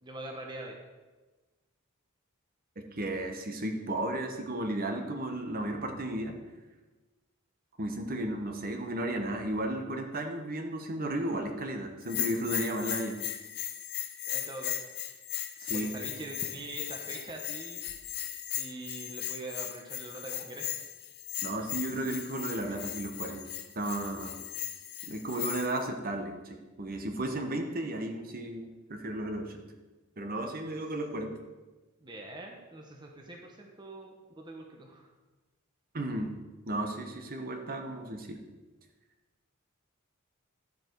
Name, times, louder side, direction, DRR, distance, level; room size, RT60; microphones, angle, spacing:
voice 1, 0.0-0.8 14.3-14.8 15.7-17.8 18.5-20.8 32.0-35.1, right 2 dB, 20° right, 1 dB, 1.0 m, -43 dB
voice 2, 2.9-6.4 7.8-13.2 15.6-15.9 21.4-23.4 23.8-24.4 25.1-29.6 30.2-31.4 35.9-36.3 36.7-38.4, right 1 dB, 40° right, 4 dB, 1.1 m, -34 dB
Bell, 12.0-25.8, left 12 dB, 50° left, 0.7 m, -37 dB
12.0 x 7.5 x 4.6 m, 1.2 s
head